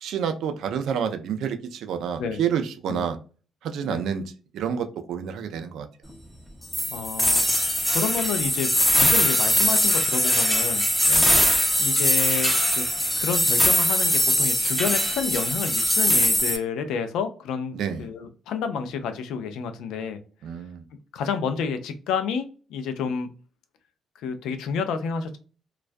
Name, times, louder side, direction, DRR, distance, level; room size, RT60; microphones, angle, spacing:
voice 1, 0.0-3.2 3.6-5.9 11.1-11.3 17.7-18.1 20.4-20.8, right 7 dB, 80° right, 8 dB, 0.4 m, -29 dB
sound 1, 6.7-16.6, equal, 5° left, 0.5 m, -21 dB
voice 2, 6.9-10.9 11.8-12.8 13.2-20.2 21.1-23.3 24.2-25.4, left 6 dB, 85° left, 8 dB, 0.4 m, -30 dB
2.3 x 2.2 x 2.5 m, 0.38 s
cardioid pair, 90°, 0 cm